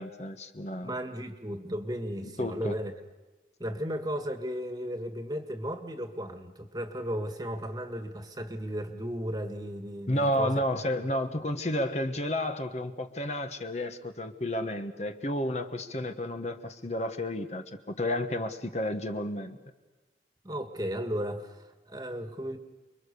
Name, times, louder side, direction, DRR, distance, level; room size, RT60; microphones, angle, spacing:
voice 1, 0.0-0.9 2.4-2.7 10.1-19.6, left 1 dB, 40° left, 7 dB, 1.3 m, -31 dB
voice 2, 0.8-2.9 3.6-10.6 20.4-22.6, equal, 20° right, 7 dB, 1.8 m, -35 dB
30.0 x 22.5 x 6.9 m, 1.2 s
head